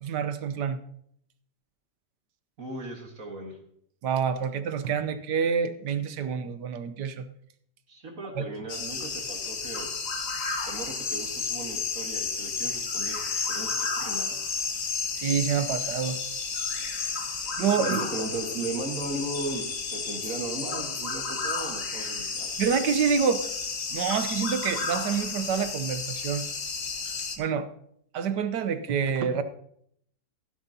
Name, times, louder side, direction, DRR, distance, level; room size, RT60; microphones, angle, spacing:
voice 1, 0.0-0.8 4.0-7.2 8.3-8.4 15.2-16.2 17.6-18.0 22.6-23.4 23.9-26.4 27.4-27.7 28.1-29.4, right 7 dB, 80° right, 10 dB, 1.5 m, -27 dB
voice 2, 2.6-3.6 7.9-9.9 10.7-13.2 13.5-14.3 17.8-22.6, right 2 dB, 50° right, 1 dB, 2.0 m, -36 dB
sound 1, 8.7-27.4, left 5 dB, 50° left, 1.6 m, -32 dB
15.5 x 11.0 x 2.8 m, 0.69 s
omnidirectional pair, 1.8 m